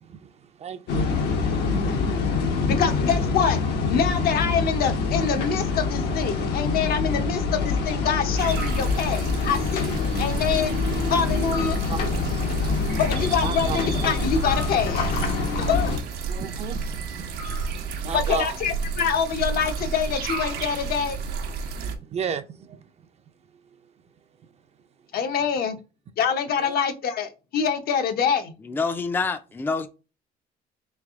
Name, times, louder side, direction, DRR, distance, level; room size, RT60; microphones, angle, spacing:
voice 1, 0.0-2.7 11.0-11.1 11.6-12.0 12.4-13.0 13.4-13.8 16.3-18.6 21.9-22.9 26.6-26.7, right 7 dB, 40° right, 0.5 m, -35 dB
sound 1, 0.9-16.0, left 4 dB, 80° left, 1.1 m, -25 dB
voice 2, 2.7-3.6 3.9-10.7 11.1-11.8 13.0-15.1 15.6-15.9 18.1-21.2 25.1-25.8 26.2-28.5, left 7 dB, 65° left, 0.8 m, -25 dB
sound 2, 8.4-22.0, right 4 dB, 75° right, 0.8 m, -31 dB
voice 3, 28.6-29.9, left 4 dB, 10° left, 0.4 m, -26 dB
3.3 x 3.2 x 3.5 m
cardioid pair, 110°, 17 cm